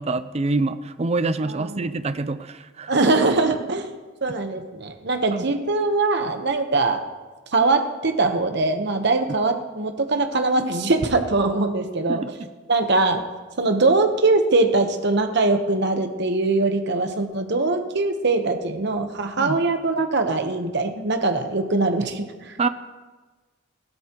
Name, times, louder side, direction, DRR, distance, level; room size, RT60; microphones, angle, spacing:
voice 1, 0.0-3.0 5.3-5.5 12.1-12.3 19.4-19.6 22.6-22.7, right 3 dB, 30° right, 12 dB, 0.5 m, -26 dB
voice 2, 1.4-1.9 2.9-3.9 4.2-7.0 7.5-12.2 12.7-13.2 13.6-22.5, right 3 dB, 60° right, 6 dB, 1.0 m, -22 dB
16.5 x 12.5 x 3.0 m, 1.3 s
head